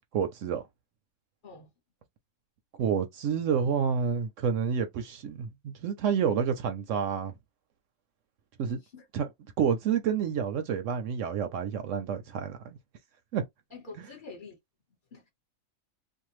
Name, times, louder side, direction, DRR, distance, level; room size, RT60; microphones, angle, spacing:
voice 1, 0.1-0.6 2.8-7.3 8.6-8.8 9.1-9.3 9.6-12.8 13.3-13.4, right 7 dB, 70° right, 0.8 m, -29 dB
voice 2, 13.7-14.6 15.1-15.3, left 3 dB, 40° left, 1.0 m, -46 dB
2.6 x 2.1 x 3.0 m
omnidirectional pair, 1.5 m